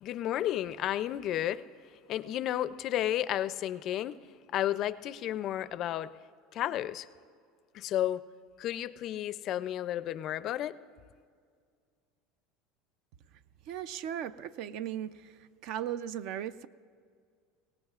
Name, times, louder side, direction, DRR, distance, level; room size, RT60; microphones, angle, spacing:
voice 1, 0.0-1.7 2.1-4.2 4.5-6.2 6.5-7.1 7.7-8.2 8.6-10.8, left 12 dB, 45° left, 0.4 m, -32 dB
voice 2, 13.7-15.1 15.6-16.7, right 10 dB, 60° right, 0.4 m, -36 dB
22.5 x 18.0 x 2.4 m
supercardioid pair, 125°, 0 cm